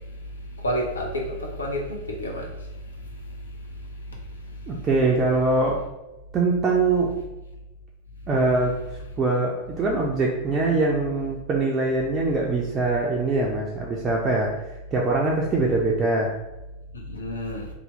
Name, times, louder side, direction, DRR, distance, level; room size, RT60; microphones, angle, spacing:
voice 1, 0.6-2.5 16.9-17.7, equal, 75° left, 0 dB, 0.6 m, -29 dB
voice 2, 4.7-5.8 6.3-7.1 8.3-8.7 9.2-14.5 14.9-16.3, right 3 dB, 25° right, -2 dB, 0.4 m, -23 dB
2.8 x 2.0 x 3.1 m, 1.0 s
figure-of-eight pair, 90°, 0 cm